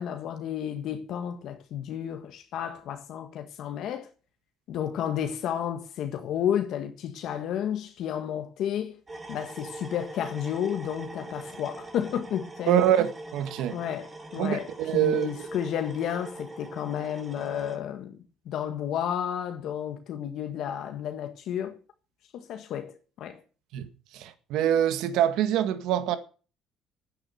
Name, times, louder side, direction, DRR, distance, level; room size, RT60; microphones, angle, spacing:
voice 1, 0.0-4.1 4.7-8.9 9.3-12.8 13.7-18.2 18.5-21.8 22.3-23.4, left 9 dB, 65° left, 1.6 m, -32 dB
sound 1, 9.1-17.8, right 2 dB, 20° right, 3.0 m, -42 dB
voice 2, 12.7-13.8 14.4-15.3 23.7-23.9 24.1-26.2, right 10 dB, 75° right, 1.8 m, -25 dB
10.0 x 9.7 x 8.0 m
cardioid pair, 110°, 0 cm